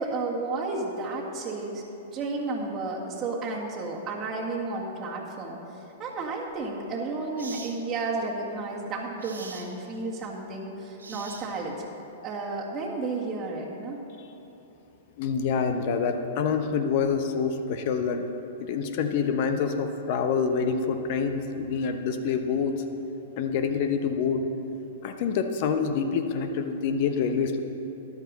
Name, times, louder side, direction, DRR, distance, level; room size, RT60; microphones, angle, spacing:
voice 1, 0.0-1.8 2.1-11.9 12.2-14.0, right 3 dB, 25° right, -5 dB, 1.8 m, -32 dB
sound 1, 6.5-6.6 7.4-7.8 9.2-9.7 11.0-11.8, right 4 dB, 80° right, 1.1 m, -42 dB
voice 2, 15.2-18.2 18.6-22.8 23.4-24.5 25.0-27.6, left 6 dB, 50° left, 7 dB, 0.9 m, -26 dB
14.0 x 10.5 x 4.0 m, 2.9 s
hypercardioid pair, 110°, 0 cm